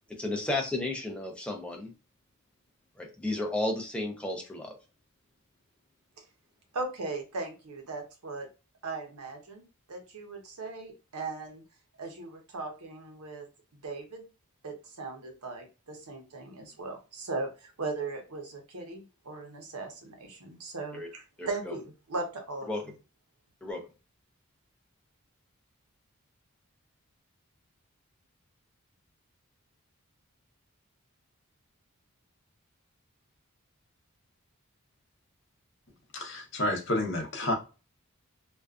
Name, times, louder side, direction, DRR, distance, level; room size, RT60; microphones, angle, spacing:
voice 1, 0.1-1.9 3.0-4.8 20.9-21.1 21.4-21.7 22.7-22.8 23.6-23.8, left 2 dB, 5° left, 0.5 m, -33 dB
voice 2, 6.7-8.5 8.8-9.6 9.9-11.6 12.0-13.5 13.8-14.2 14.6-22.7, right 3 dB, 85° right, 0.8 m, -38 dB
voice 3, 36.1-37.5, left 1 dB, 55° left, 0.7 m, -30 dB
2.4 x 2.3 x 2.3 m
head